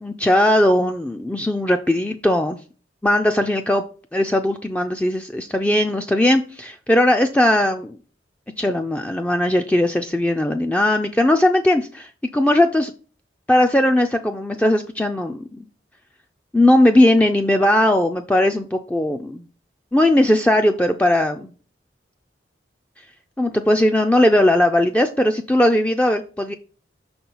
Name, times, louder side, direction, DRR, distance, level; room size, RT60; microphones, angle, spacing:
voice 1, 0.0-2.6 3.0-3.8 4.1-8.0 8.6-12.9 13.5-15.4 16.5-19.4 19.9-21.5 23.4-26.5, left 1 dB, 5° left, 5 dB, 0.3 m, -18 dB
5.9 x 4.3 x 5.5 m, 0.39 s
head